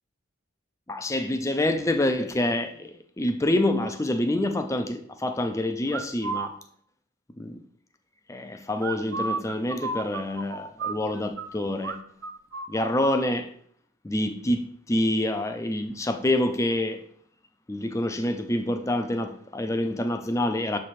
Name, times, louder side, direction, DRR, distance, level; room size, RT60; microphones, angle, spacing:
voice 1, 0.9-6.6 7.4-7.6 8.3-12.0 12.7-13.5 14.0-17.0 17.7-20.8, left 1 dB, 15° left, 0.4 m, -27 dB
sound 1, 5.9-6.5 8.8-11.5 11.8-12.0 12.2-13.2, right 4 dB, 80° right, 0.6 m, -32 dB
6.9 x 3.2 x 4.2 m
head